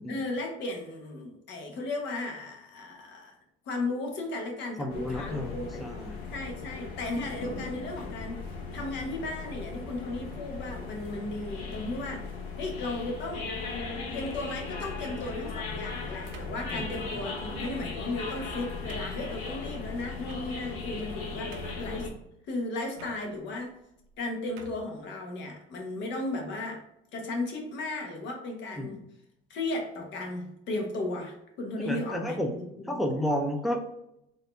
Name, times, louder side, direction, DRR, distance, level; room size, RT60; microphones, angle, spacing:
voice 1, 0.1-3.3 3.7-5.9 6.3-8.4 8.7-12.3 12.6-13.5 14.1-22.1 22.5-23.8 24.2-26.8 27.1-29.0 29.5-33.1, left 2 dB, 60° left, 2 dB, 1.2 m, -35 dB
voice 2, 4.8-6.2 16.7-17.0 28.8-28.9 31.8-32.6 32.9-34.0, equal, ahead, 2 dB, 0.5 m, -31 dB
sound 1, 4.9-22.1, left 4 dB, 80° left, 1.0 m, -38 dB
sound 2, 15.1-15.6 16.3-17.0 17.6-17.8 18.4-18.5 18.9-19.2 20.2-20.8 21.1-21.2 21.5-22.0 22.9-23.2 24.0-24.2 24.6-24.9, right 5 dB, 85° right, 0.7 m, -48 dB
4.1 x 2.7 x 3.3 m, 0.80 s
supercardioid pair, 105°, 21 cm